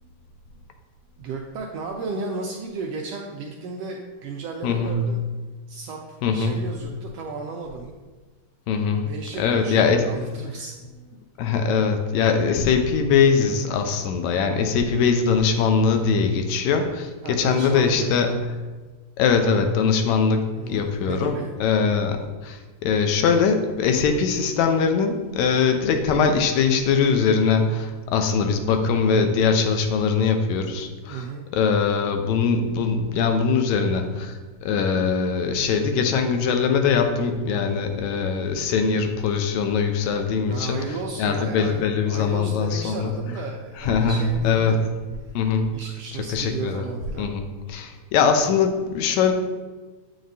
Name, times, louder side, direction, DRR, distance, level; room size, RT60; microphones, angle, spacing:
voice 1, 1.2-5.2 5.7-7.9 9.0-10.7 17.2-18.4 20.5-21.5 31.1-31.4 40.5-44.9 45.2-45.3 45.7-47.3, right 4 dB, 80° right, 0 dB, 1.4 m, -34 dB
voice 2, 4.6-5.0 6.2-6.6 8.7-9.1 9.4-10.2 11.4-18.4 19.2-31.3 31.5-40.8 41.2-43.1 43.8-44.8 45.4-45.8 46.3-46.8 47.2-49.3, left 5 dB, 80° left, 6 dB, 1.8 m, -22 dB
7.7 x 5.0 x 2.7 m, 1.3 s
omnidirectional pair, 3.3 m